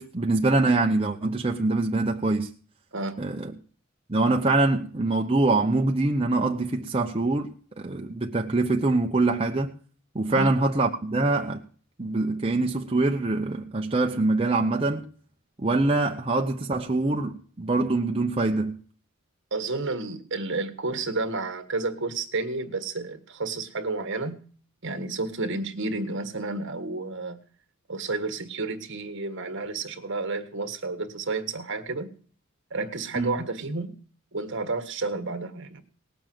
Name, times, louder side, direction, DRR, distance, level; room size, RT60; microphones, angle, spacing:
voice 1, 0.0-2.5 3.2-3.5 4.1-9.7 10.1-11.6 12.0-15.1 15.6-18.8 33.1-33.4, right 2 dB, 25° right, 0.8 m, -24 dB
voice 2, 19.5-24.4 24.8-27.4 27.9-32.1 32.7-33.9 34.3-35.8, right 3 dB, 60° right, 1.6 m, -31 dB
18.5 x 7.0 x 7.7 m
head